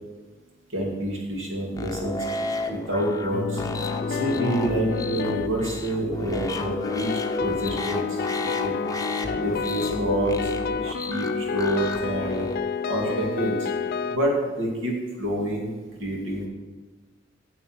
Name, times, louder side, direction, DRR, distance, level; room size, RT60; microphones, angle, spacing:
voice 1, 0.7-2.3 2.7-3.6 4.1-7.1 7.4-8.7 9.4-10.5 10.8-12.5 12.9-13.6 14.1-16.5, right 1 dB, 75° right, -1 dB, 2.5 m, -27 dB
sound 1, 1.8-12.6, left 2 dB, 20° left, 0.7 m, -33 dB
sound 2, 3.3-5.7 6.6-14.2, left 5 dB, 50° left, 0.4 m, -29 dB
9.2 x 7.2 x 6.2 m, 1.3 s
head